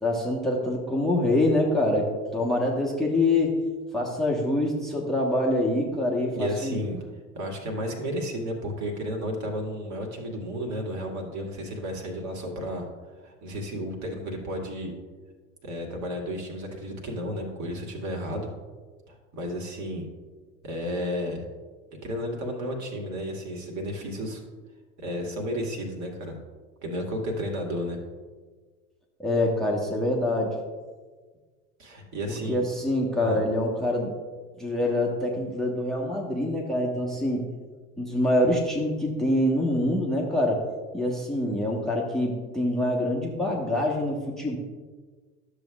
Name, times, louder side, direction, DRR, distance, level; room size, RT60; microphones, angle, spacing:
voice 1, 0.0-3.6 3.9-6.8 29.2-30.6 32.5-34.1 34.6-37.5 38.0-40.6 40.9-44.6, left 1 dB, ahead, -1 dB, 1.2 m, -25 dB
voice 2, 6.3-7.0 7.3-12.8 13.2-14.9 15.6-18.5 19.1-20.1 20.6-21.5 22.0-24.4 25.0-26.3 26.8-28.0 31.8-32.6 33.2-33.4, equal, 40° right, 1 dB, 2.1 m, -32 dB
12.5 x 7.0 x 2.4 m, 1.4 s
figure-of-eight pair, 75°, 44 cm